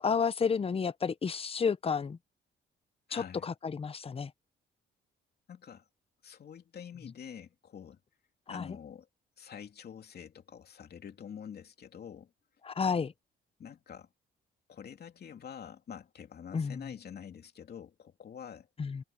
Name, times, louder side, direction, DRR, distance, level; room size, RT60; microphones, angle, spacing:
voice 1, 0.0-2.2 3.1-4.3 8.5-8.7 12.6-13.1 16.5-16.8 18.8-19.0, left 6 dB, 30° left, 0.7 m, -31 dB
voice 2, 3.1-3.5 5.5-5.8 6.2-8.0 8.5-9.1 9.4-12.3 13.6-14.1 14.7-18.7, left 8 dB, 55° left, 3.0 m, -46 dB
cardioid pair, 90°, 20 cm